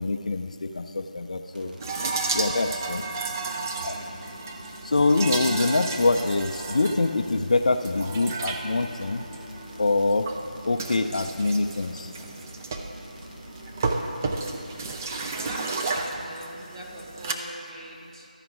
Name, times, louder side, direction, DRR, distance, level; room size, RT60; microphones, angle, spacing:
voice 1, 0.0-1.8 2.3-3.0 3.8-3.9 4.8-9.2 9.8-10.3 10.7-12.1, left 3 dB, 55° left, 5 dB, 0.5 m, -24 dB
sound 1, 1.5-15.3, equal, 70° right, 1.4 m, -46 dB
sound 2, 1.8-17.3, right 3 dB, 20° right, 0.4 m, -33 dB
voice 2, 2.8-4.1 15.1-18.3, right 1 dB, 35° right, -4 dB, 1.7 m, -42 dB
13.5 x 5.0 x 4.8 m, 2.5 s
figure-of-eight pair, 160°, 5 cm